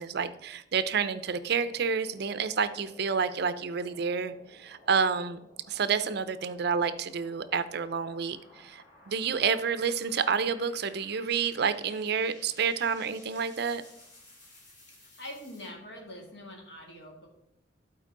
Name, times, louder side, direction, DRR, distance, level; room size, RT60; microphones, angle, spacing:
voice 1, 0.0-5.4 5.7-13.8, right 6 dB, 60° right, 13 dB, 0.5 m, -29 dB
sound 1, 1.1-15.7, left 1 dB, 45° left, 3.2 m, -56 dB
voice 2, 15.2-17.3, left 1 dB, 65° left, 0 dB, 2.2 m, -44 dB
11.5 x 4.4 x 3.8 m, 0.79 s
head